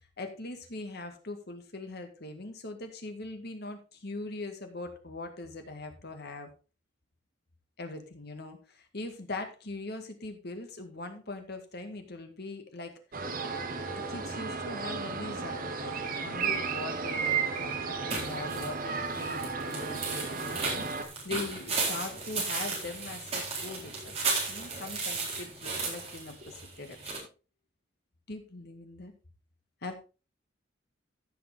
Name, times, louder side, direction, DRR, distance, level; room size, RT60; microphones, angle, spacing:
voice 1, 0.2-6.5 7.8-12.9 13.7-24.2 24.5-27.2 28.3-29.1 29.8-29.9, left 2 dB, 60° left, 6 dB, 2.0 m, -41 dB
sound 1, 13.1-21.0, right 5 dB, 50° right, 1.4 m, -34 dB
sound 2, 18.1-27.2, right 4 dB, 35° right, 4.1 m, -35 dB
15.0 x 6.0 x 3.6 m, 0.33 s
head